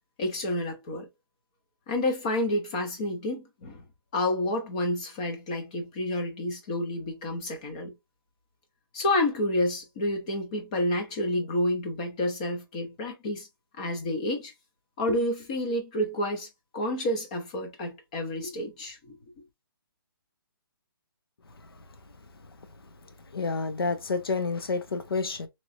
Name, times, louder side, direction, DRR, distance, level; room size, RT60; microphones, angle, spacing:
voice 1, 0.2-1.1 1.9-3.8 4.1-7.9 8.9-13.5 13.8-14.5 15.0-16.5 16.7-19.2, left 1 dB, 20° left, 0.7 m, -29 dB
voice 2, 23.3-25.5, left 4 dB, 85° left, 0.8 m, -29 dB
3.0 x 2.9 x 2.6 m
hypercardioid pair, 170°, 12 cm